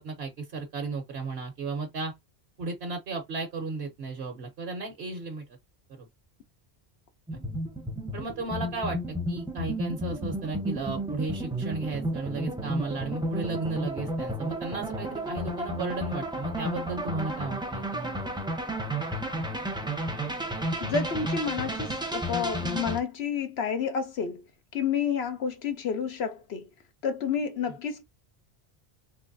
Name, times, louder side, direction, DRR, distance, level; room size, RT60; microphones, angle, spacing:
voice 1, 0.0-2.1 2.6-5.4 5.9-6.1 7.3-7.4 8.1-18.2, right 3 dB, 70° right, 1.2 m, -34 dB
sound 1, 7.3-23.0, equal, 5° right, 0.7 m, -32 dB
voice 2, 20.8-24.4 24.7-26.7 27.0-28.0, left 6 dB, 75° left, 0.9 m, -30 dB
3.9 x 3.0 x 2.6 m
omnidirectional pair, 1.1 m